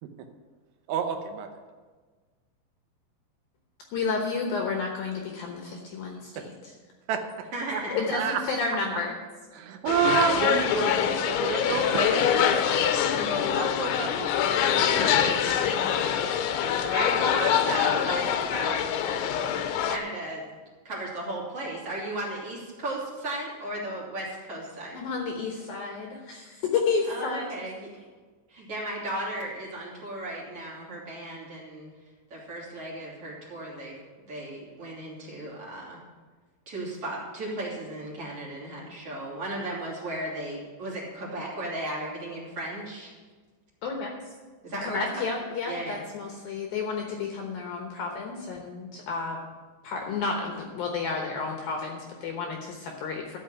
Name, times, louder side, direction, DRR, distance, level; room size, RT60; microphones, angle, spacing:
voice 1, 0.9-1.5 7.1-7.2 7.7-7.8 8.1-8.4 8.9-9.0 9.5-13.0 13.3-14.3 14.6-15.3, right 7 dB, 80° right, 5 dB, 3.2 m, -29 dB
voice 2, 3.9-6.7 7.9-9.1 24.9-27.5 43.8-44.1 44.8-49.4 49.8-53.4, left 4 dB, 70° left, 1 dB, 2.4 m, -31 dB
voice 3, 7.5-8.2 13.1-13.5 16.3-16.4 16.9-18.2 18.5-19.1 19.8-20.4 20.9-25.0 27.1-28.1 28.5-31.9 32.3-34.0 34.3-36.0 36.7-43.1 44.6-45.2 45.7-46.0, right 1 dB, 35° right, -5 dB, 3.4 m, -35 dB
sound 1, 9.9-20.0, left 8 dB, 85° left, 3.1 m, -25 dB
12.5 x 5.9 x 8.9 m, 1.4 s
omnidirectional pair, 5.3 m